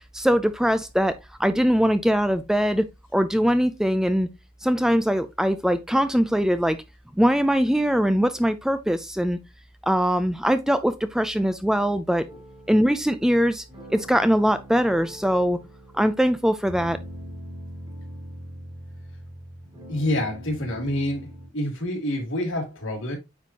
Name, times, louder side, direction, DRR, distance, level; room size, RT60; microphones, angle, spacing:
voice 1, 0.1-1.1 1.4-4.3 4.6-6.8 7.2-9.4 9.8-12.3 12.7-13.6 13.9-15.6 15.9-17.0, equal, 5° right, 0.4 m, -22 dB
sound 1, 12.3-21.5, equal, 20° right, 2.3 m, -42 dB
voice 2, 19.9-23.2, left 1 dB, 75° left, 2.8 m, -27 dB
9.0 x 4.3 x 2.8 m
head